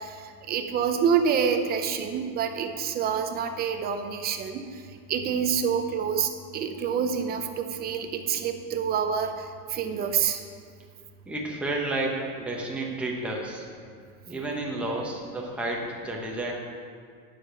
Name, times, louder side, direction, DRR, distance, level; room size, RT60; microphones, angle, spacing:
voice 1, 0.0-4.7 5.1-10.4, right 7 dB, 25° right, 6 dB, 0.6 m, -27 dB
voice 2, 11.3-13.7 14.3-16.5, right 2 dB, 5° right, -2 dB, 0.9 m, -31 dB
9.7 x 5.1 x 6.3 m, 2.1 s
supercardioid pair, 150°, 42 cm